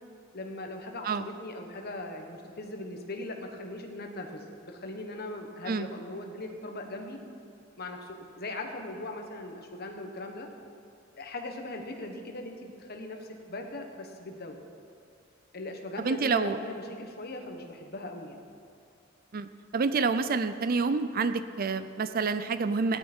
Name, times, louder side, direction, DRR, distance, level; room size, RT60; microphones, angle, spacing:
voice 1, 0.3-7.2 7.8-10.5 11.2-14.6 15.5-18.4, left 2 dB, 50° left, 3 dB, 1.4 m, -39 dB
voice 2, 16.0-16.6 19.3-23.0, right 4 dB, 45° right, 12 dB, 0.5 m, -28 dB
16.5 x 11.5 x 4.5 m, 2.5 s
head